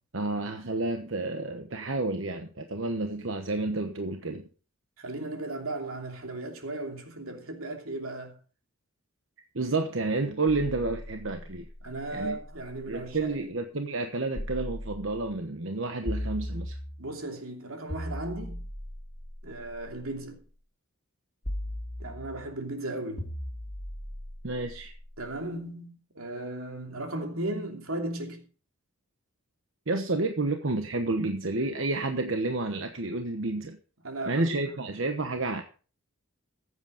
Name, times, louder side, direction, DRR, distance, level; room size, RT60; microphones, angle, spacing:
voice 1, 0.1-4.5 9.5-11.7 12.1-12.4 12.9-16.8 24.4-24.9 29.9-33.8 34.3-35.6, right 2 dB, 65° right, 1.2 m, -30 dB
voice 2, 5.0-8.4 11.8-13.5 17.0-18.6 19.4-20.4 22.0-23.3 25.2-28.4 34.0-34.7, right 2 dB, 90° right, 2.9 m, -36 dB
sound 1, 10.5-13.2 14.3-15.4 16.1-17.2 17.9-20.2 21.4-22.5 23.2-25.3, equal, 35° left, 2.7 m, -38 dB
15.0 x 8.2 x 5.1 m
head